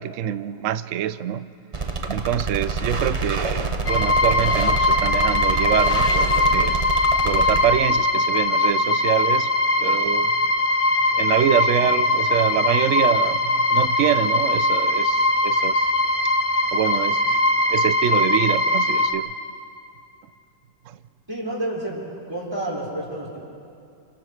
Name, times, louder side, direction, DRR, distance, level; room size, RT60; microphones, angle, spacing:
voice 1, 0.0-1.5 2.0-6.8 7.2-9.5 9.8-10.3 11.1-15.9 16.7-17.4 17.7-19.3 20.9-21.0, right 11 dB, 70° right, 13 dB, 0.7 m, -25 dB
sound 1, 1.7-7.6, right 3 dB, 50° right, 0.3 m, -27 dB
sound 2, 3.9-19.1, left 2 dB, 20° left, 1.2 m, -21 dB
voice 2, 21.3-22.0 22.3-23.4, right 1 dB, 15° right, -6 dB, 5.7 m, -29 dB
29.5 x 28.5 x 3.4 m, 2.5 s
omnidirectional pair, 1.9 m